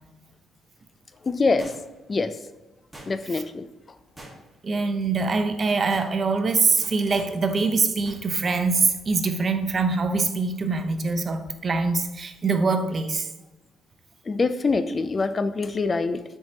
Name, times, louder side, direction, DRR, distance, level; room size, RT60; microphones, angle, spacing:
voice 1, 1.2-1.8 2.1-2.4 3.1-3.7 14.3-16.2, left 3 dB, 35° left, 11 dB, 0.3 m, -24 dB
sound 1, 1.6-2.1 2.9-3.4 4.2-4.7 5.0-5.2 5.6-6.1 6.8-7.4 8.0-8.2 8.6-8.7, right 1 dB, 10° right, 1.7 m, -45 dB
voice 2, 4.6-13.3, right 4 dB, 40° right, 8 dB, 0.7 m, -24 dB
7.3 x 4.6 x 2.8 m, 1.0 s
cardioid pair, 90°, 0 cm